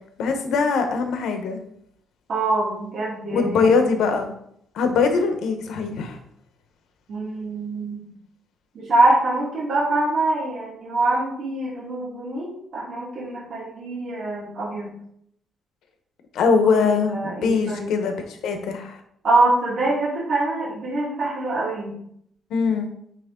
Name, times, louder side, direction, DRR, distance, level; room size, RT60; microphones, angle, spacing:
voice 1, 0.2-1.6 3.3-4.3 4.7-6.2 16.3-19.0 22.5-22.9, left 5 dB, 75° left, 6 dB, 1.0 m, -22 dB
voice 2, 2.3-3.7 7.1-8.0 8.7-14.9 16.6-17.9 19.2-21.9, right 2 dB, 45° right, -8 dB, 2.1 m, -24 dB
9.3 x 3.2 x 3.7 m, 0.70 s
cardioid pair, 175°, 0 cm